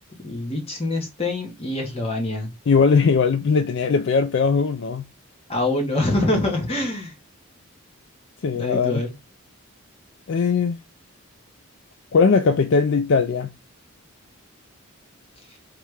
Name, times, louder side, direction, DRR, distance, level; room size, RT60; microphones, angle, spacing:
voice 1, 0.2-2.5 5.5-7.1 8.5-9.1, left 2 dB, 25° left, 1.2 m, -25 dB
voice 2, 2.7-5.1 8.4-9.0 10.3-10.8 12.1-13.5, left 5 dB, 55° left, 0.4 m, -19 dB
3.3 x 3.2 x 4.8 m
head